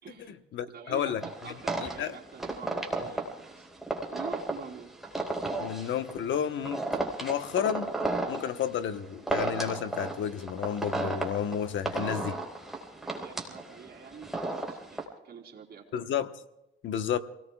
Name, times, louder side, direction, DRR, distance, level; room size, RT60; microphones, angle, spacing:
voice 1, 0.0-0.4 0.7-3.7 4.1-4.9 13.0-16.1, right 6 dB, 55° right, 1 dB, 3.7 m, -46 dB
voice 2, 0.5-1.2 1.8-2.1 5.6-6.8 7.2-7.9 8.3-12.4 15.9-16.3 16.8-17.2, left 9 dB, 75° left, 8 dB, 1.2 m, -31 dB
sound 1, 1.2-15.0, right 2 dB, ahead, 4.4 m, -34 dB
29.5 x 18.5 x 2.4 m, 0.95 s
cardioid pair, 90°, 20 cm